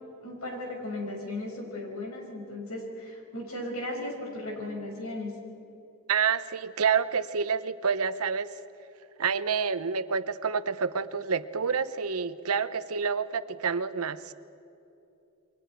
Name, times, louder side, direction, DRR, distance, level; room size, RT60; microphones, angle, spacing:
voice 1, 0.2-5.3, left 1 dB, 75° left, 0 dB, 5.7 m, -36 dB
voice 2, 6.1-8.5 9.2-14.3, right 6 dB, 80° right, 13 dB, 0.8 m, -28 dB
29.0 x 23.0 x 4.5 m, 2.8 s
head